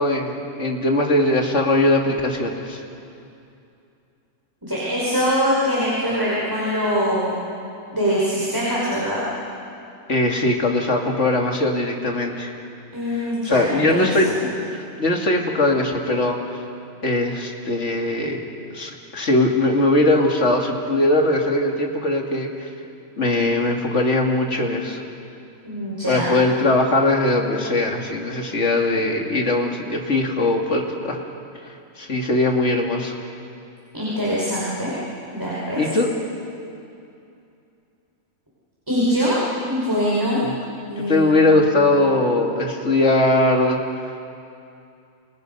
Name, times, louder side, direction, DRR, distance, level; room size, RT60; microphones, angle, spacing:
voice 1, 0.0-2.8 10.1-12.5 13.1-14.3 14.7-16.4 17.0-18.4 18.7-22.7 23.2-25.0 26.1-31.2 32.0-33.2 35.8-36.1 41.1-43.8, left 2 dB, 55° left, 1 dB, 2.7 m, -20 dB
voice 2, 4.6-7.4 7.9-9.2 12.9-14.4 25.6-26.4 33.9-34.9 35.3-35.8 38.9-40.4 40.9-41.6, equal, 15° right, -8 dB, 5.4 m, -23 dB
29.0 x 27.5 x 5.5 m, 2.6 s
omnidirectional pair, 1.4 m